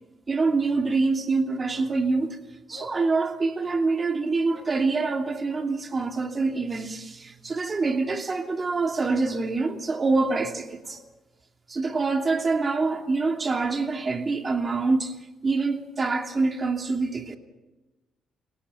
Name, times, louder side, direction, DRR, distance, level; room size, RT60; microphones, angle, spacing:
voice 1, 0.3-2.4 2.7-11.0 11.7-15.1 15.4-17.4, right 3 dB, 35° right, 2.7 m, -25 dB
Bark, 1.7-2.0 2.3-2.4 2.7-3.0 3.6-3.9 4.5-4.8 5.4-5.7 7.3-7.4 7.8-8.1 8.4-8.6 9.2-9.5 10.0-11.1 11.4-11.5, left 7 dB, 75° left, 4.4 m, -50 dB
30.0 x 17.5 x 5.7 m
cardioid pair, 90°, 0 cm